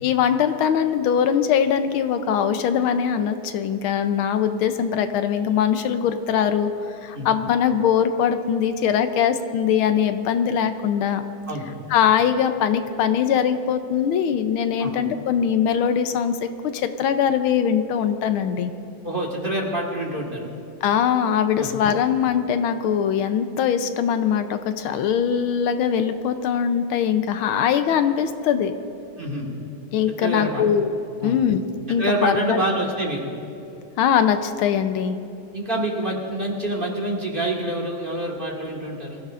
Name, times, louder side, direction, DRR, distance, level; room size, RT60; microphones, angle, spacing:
voice 1, 0.0-6.7 7.0-11.2 11.9-18.7 20.8-28.7 29.9-30.9 31.2-32.6 34.0-35.2, left 8 dB, 80° left, 9 dB, 1.5 m, -21 dB
voice 2, 19.0-20.5 21.5-21.8 29.2-29.5 30.2-30.6 31.2-31.4 32.0-33.3 35.5-39.2, right 1 dB, 25° right, -1 dB, 1.7 m, -26 dB
24.0 x 15.5 x 2.5 m, 2.8 s
omnidirectional pair, 2.3 m